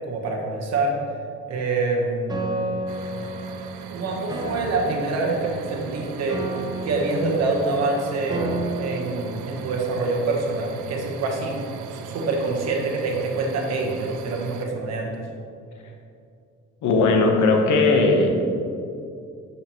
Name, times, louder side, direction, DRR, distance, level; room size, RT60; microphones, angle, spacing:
voice 1, 0.1-0.9 1.5-2.6 3.9-6.4 6.8-8.4 8.8-11.6 11.9-15.1, right 3 dB, 60° right, 0 dB, 1.1 m, -26 dB
Piano, 2.3-10.3, right 1 dB, 15° right, 0.8 m, -33 dB
sound 1, 2.9-14.7, right 7 dB, 80° right, 0.5 m, -39 dB
voice 2, 16.8-18.3, left 3 dB, 75° left, 2 dB, 1.0 m, -18 dB
6.9 x 5.7 x 3.0 m, 2.5 s
cardioid pair, 90°, 30 cm